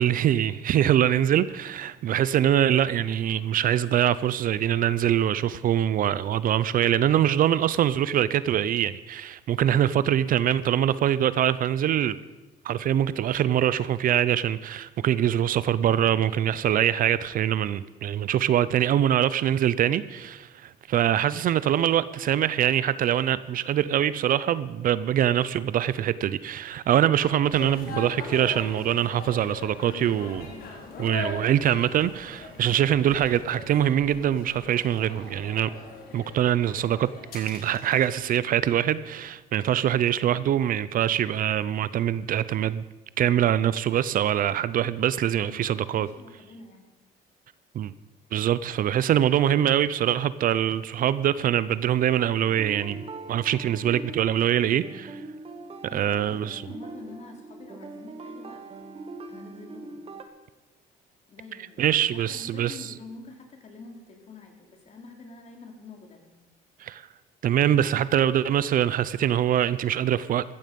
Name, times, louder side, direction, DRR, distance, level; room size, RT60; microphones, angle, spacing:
voice 1, 0.0-12.2 12.6-30.5 31.0-35.7 36.1-37.1 37.3-42.8 43.2-46.1 47.7-47.9 48.3-55.2 55.9-56.6 61.8-62.8 66.8-67.1 67.4-70.4, right 10 dB, 55° right, 0.6 m, -24 dB
sound 1, 27.5-38.2, left 3 dB, 60° left, 3.9 m, -40 dB
voice 2, 45.3-46.9 55.9-58.6 59.3-60.0 61.3-66.4, left 3 dB, 40° left, 3.6 m, -46 dB
sound 2, 52.4-60.2, right 2 dB, 35° right, 1.5 m, -41 dB
15.0 x 14.0 x 5.3 m
cardioid pair, 110°, 17 cm